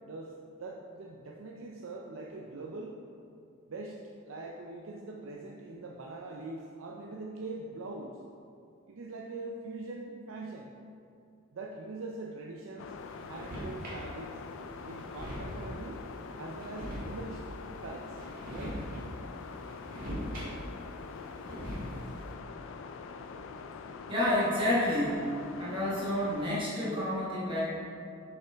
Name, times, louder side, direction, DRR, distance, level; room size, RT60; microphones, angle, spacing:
voice 1, 0.0-3.0 3.7-8.2 8.9-10.7 11.5-12.9 13.3-14.4 14.7-16.0 16.4-17.4 17.8-18.2 18.5-18.8, right 2 dB, 75° right, -1 dB, 0.5 m, -42 dB
sound 1, 12.8-26.6, left 4 dB, 65° left, 0.3 m, -44 dB
sound 2, 13.1-14.1 14.6-14.7 14.9-15.8 16.5-17.5 18.1-19.1 19.4-20.8 21.1-22.2, equal, 45° right, 1.5 m, -41 dB
voice 2, 24.1-25.2 25.6-27.6, left 1 dB, 25° right, -8 dB, 1.3 m, -29 dB
6.7 x 5.8 x 3.4 m, 2.4 s
head